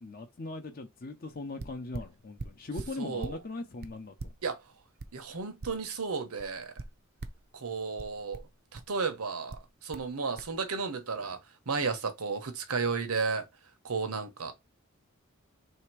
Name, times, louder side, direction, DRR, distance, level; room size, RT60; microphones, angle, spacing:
voice 1, 0.0-4.3, left 2 dB, 40° left, 0.7 m, -40 dB
sound 1, 1.6-3.4 3.8-6.1 6.4-7.5 8.0-9.0 9.5-10.1 10.4-10.5, right 3 dB, 45° right, 0.5 m, -42 dB
voice 2, 3.0-3.4 4.4-4.6 5.1-6.7 7.5-8.4 8.7-11.4 11.7-13.4 13.8-14.5, right 4 dB, 85° right, 1.0 m, -33 dB
3.3 x 2.8 x 4.6 m
head